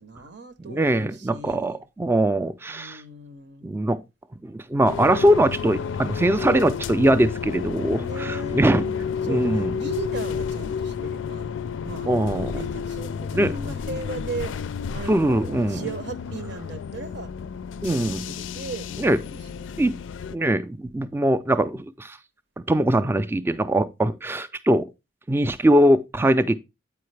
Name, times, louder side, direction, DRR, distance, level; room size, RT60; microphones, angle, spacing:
voice 1, 0.0-1.8 2.7-3.7 7.9-11.5 11.8-12.1 12.5-17.3 17.8-19.9, right 3 dB, 60° right, 0.8 m, -37 dB
voice 2, 0.7-3.0 3.6-4.0 4.4-8.8 9.3-9.7 12.1-12.5 13.3-13.5 15.1-15.8 17.8-18.2 19.0-19.2 19.8-19.9 20.3-22.2 22.7-24.9 25.3-26.6, right 1 dB, 10° right, 0.3 m, -21 dB
sound 1, 4.8-20.3, left 6 dB, 75° left, 0.4 m, -31 dB
8.4 x 4.7 x 3.2 m
head